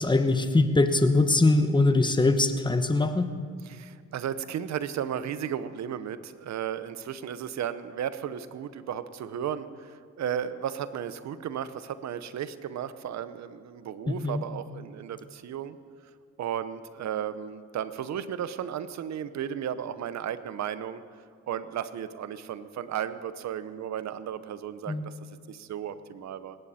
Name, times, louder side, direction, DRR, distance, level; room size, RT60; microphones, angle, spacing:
voice 1, 0.0-3.2 14.1-14.4 24.9-25.0, left 2 dB, 15° left, 8 dB, 1.1 m, -22 dB
voice 2, 3.6-15.8 16.4-21.0 21.5-25.1 25.5-26.6, right 9 dB, 65° right, 13 dB, 0.9 m, -34 dB
19.5 x 16.5 x 4.3 m, 2.1 s
cardioid pair, 90°, 30 cm